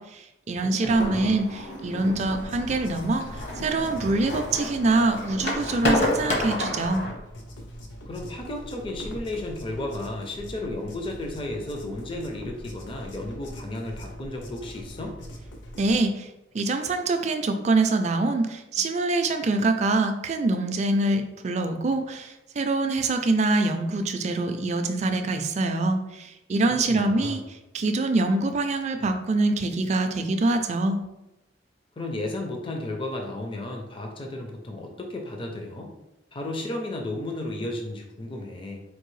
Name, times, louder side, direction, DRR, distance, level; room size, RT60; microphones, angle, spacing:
voice 1, 0.0-7.0 15.8-16.3 16.5-27.4 27.7-31.0, right 2 dB, 40° right, 7 dB, 0.4 m, -25 dB
voice 2, 0.6-1.4 8.0-15.2 26.7-27.4 32.0-35.9 36.3-38.8, left 1 dB, 30° left, 2 dB, 0.4 m, -34 dB
sound 1, 0.8-7.1, left 1 dB, 60° left, 1.0 m, -30 dB
sound 2, 1.8-16.0, equal, 85° left, 0.7 m, -42 dB
4.4 x 2.6 x 3.1 m, 0.93 s
head